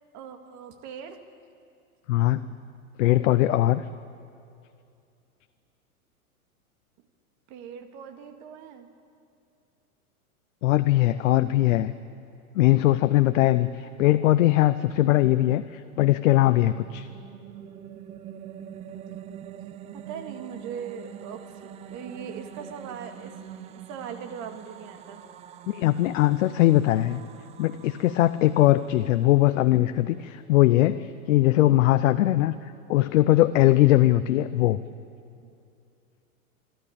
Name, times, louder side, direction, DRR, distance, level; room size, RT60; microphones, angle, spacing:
voice 1, 0.1-1.2 7.5-8.9 19.9-23.3 23.7-25.2 33.5-33.7 35.4-35.5, right 7 dB, 40° right, 6 dB, 2.0 m, -40 dB
voice 2, 2.1-2.4 3.0-3.8 10.6-11.9 12.5-17.1 25.7-27.2 27.6-34.8, left 15 dB, 60° left, 12 dB, 0.7 m, -21 dB
sound 1, 16.5-29.6, right 9 dB, 15° right, 0.4 m, -44 dB
25.0 x 12.5 x 8.7 m, 2.5 s
hypercardioid pair, 115°, 44 cm